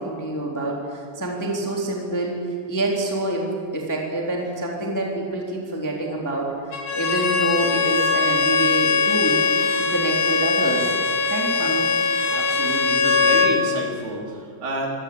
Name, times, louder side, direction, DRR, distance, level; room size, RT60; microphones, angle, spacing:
voice 1, 0.0-2.4 2.7-9.4 9.8-11.0 11.3-11.9, right 2 dB, 5° left, -2 dB, 2.9 m, -26 dB
Bowed string instrument, 6.7-13.6, left 5 dB, 75° left, 5.0 m, -21 dB
voice 2, 12.3-15.0, right 2 dB, 55° right, 0 dB, 4.9 m, -29 dB
25.5 x 18.0 x 8.9 m, 2.2 s
omnidirectional pair, 5.6 m